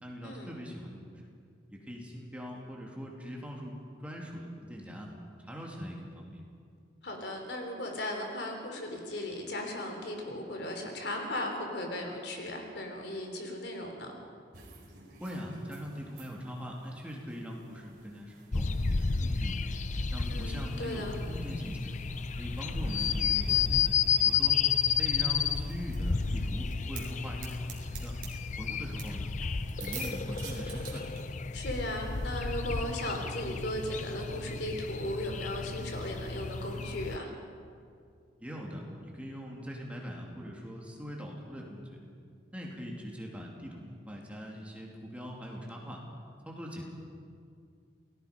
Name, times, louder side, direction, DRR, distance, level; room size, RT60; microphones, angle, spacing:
voice 1, 0.0-1.1 1.7-5.1 5.4-6.4 15.2-19.6 20.1-21.9 22.4-24.6 25.0-28.2 28.6-29.3 29.8-31.1 38.4-42.0 42.5-46.0 46.4-46.8, equal, 5° right, -2 dB, 2.9 m, -41 dB
voice 2, 7.0-14.2 20.3-21.2 31.5-37.3, left 1 dB, 65° left, 3 dB, 3.6 m, -37 dB
sound 1, 14.5-31.2, right 4 dB, 50° right, 4.5 m, -50 dB
sound 2, 18.5-37.2, left 6 dB, 40° left, 0.6 m, -32 dB
28.5 x 19.0 x 5.3 m, 2.3 s
head